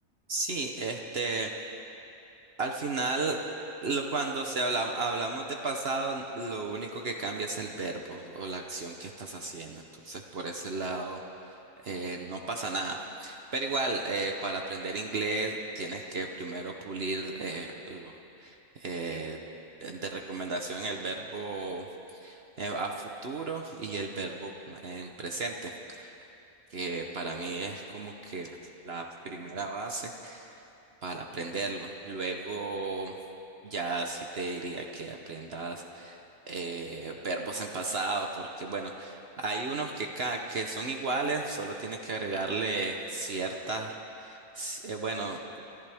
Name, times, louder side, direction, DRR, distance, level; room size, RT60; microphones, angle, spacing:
voice 1, 0.3-1.5 2.6-3.4 3.8-11.2 11.8-18.1 18.4-19.4 19.8-26.2 26.7-28.6 28.8-30.6 31.0-33.1 33.6-45.6, right 3 dB, 55° right, 2 dB, 1.1 m, -34 dB
28.0 x 13.5 x 3.5 m, 2.9 s
omnidirectional pair, 1.4 m